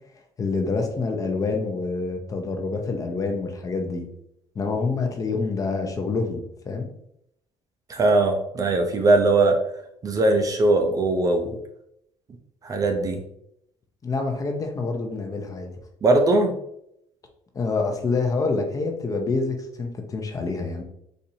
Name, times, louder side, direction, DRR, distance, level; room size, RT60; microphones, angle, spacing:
voice 1, 0.4-4.0 4.5-6.9 14.0-15.7 17.5-20.8, left 3 dB, 30° left, 4 dB, 0.6 m, -27 dB
voice 2, 7.9-9.6 10.0-11.5 12.6-13.2 16.0-16.5, right 2 dB, 30° right, 4 dB, 0.5 m, -20 dB
4.3 x 2.6 x 2.6 m, 0.76 s
cardioid pair, 125°, 12 cm